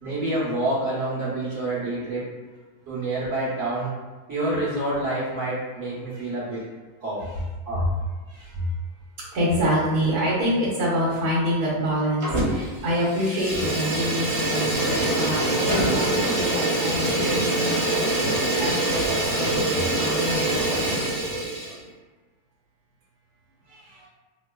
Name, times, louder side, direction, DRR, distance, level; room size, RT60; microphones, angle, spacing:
voice 1, 0.0-2.3 2.9-3.9 4.3-6.6 7.0-7.3 7.6-7.9, right 2 dB, 50° right, -8 dB, 1.3 m, -27 dB
voice 2, 8.3-8.7 9.3-18.1 18.6-20.9 23.7-24.1, equal, 70° right, -7 dB, 1.4 m, -27 dB
Fire, 12.2-12.7 13.0-21.8, right 1 dB, 35° right, 0.6 m, -24 dB
4.8 x 2.0 x 2.2 m, 1.3 s
omnidirectional pair, 1.7 m